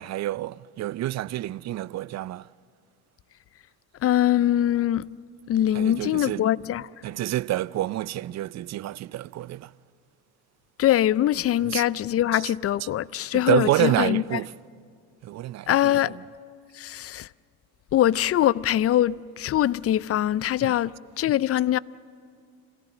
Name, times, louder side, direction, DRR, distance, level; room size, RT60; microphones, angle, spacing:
voice 1, 0.0-2.5 5.7-6.5 7.0-9.7 11.6-11.8 12.3-12.5 12.8-12.9 13.3-14.5 15.2-16.2 20.6-20.8, right 14 dB, 40° right, 0.5 m, -28 dB
voice 2, 4.0-5.1 5.5-6.8 10.8-14.2 15.7-16.2 16.7-17.3 17.9-21.8, left 12 dB, 35° left, 0.5 m, -23 dB
26.5 x 17.5 x 7.4 m
hypercardioid pair, 75°, 43 cm